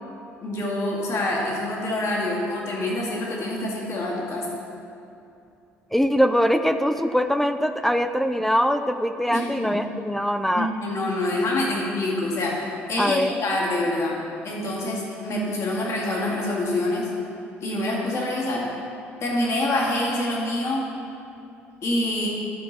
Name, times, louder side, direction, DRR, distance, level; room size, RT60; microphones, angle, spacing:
voice 1, 0.4-4.5 9.3-9.8 10.5-14.2 14.4-17.1 17.6-18.7 19.2-20.9 21.8-22.3, left 1 dB, 45° left, -3 dB, 2.1 m, -26 dB
voice 2, 5.9-10.7 13.0-13.3, equal, 5° left, 8 dB, 0.4 m, -22 dB
11.5 x 4.6 x 5.5 m, 2.7 s
figure-of-eight pair, 50°, 6 cm